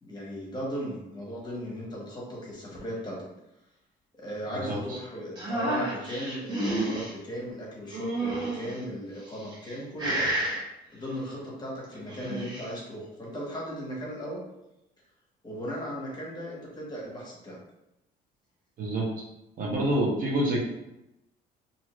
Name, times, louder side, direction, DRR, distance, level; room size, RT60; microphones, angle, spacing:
voice 1, 0.0-3.3 4.2-10.3 10.9-14.4 15.4-17.6, equal, 25° left, -3 dB, 1.0 m, -37 dB
voice 2, 4.5-5.0 18.8-19.2 19.6-20.6, right 1 dB, 55° right, -2 dB, 0.9 m, -27 dB
sound 1, 5.4-7.1 7.9-8.8 9.4-9.7 10.0-10.6 11.9-12.7, right 1 dB, 25° right, 1.1 m, -30 dB
2.7 x 2.4 x 3.0 m, 0.89 s
cardioid pair, 110°, 17 cm